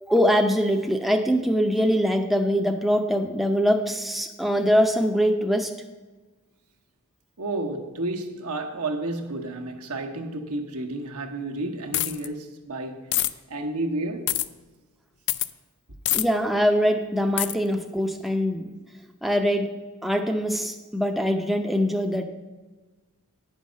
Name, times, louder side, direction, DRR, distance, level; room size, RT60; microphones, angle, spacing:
voice 1, 0.0-5.7 16.1-18.7 19.2-19.7 20.0-22.2, equal, ahead, 0.5 m, -23 dB
voice 2, 7.4-14.4, right 2 dB, 80° right, 1.0 m, -31 dB
sound 1, 11.9-12.3 13.1-13.3 14.3-14.5 15.3-15.5 16.1-16.2 17.4-17.5, left 14 dB, 55° left, 0.4 m, -24 dB
9.3 x 5.6 x 6.3 m
head